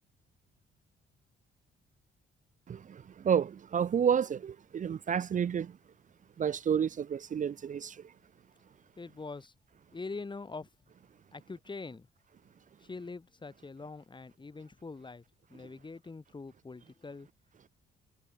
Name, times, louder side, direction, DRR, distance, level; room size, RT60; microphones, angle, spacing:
voice 1, 2.7-5.8 6.4-8.0, right 8 dB, 40° right, 0.6 m, -30 dB
voice 2, 9.0-9.5 9.9-10.7 11.3-12.1 12.8-15.2 15.5-17.3, left 3 dB, 25° left, 2.3 m, -43 dB
cardioid pair, 90°, 20 cm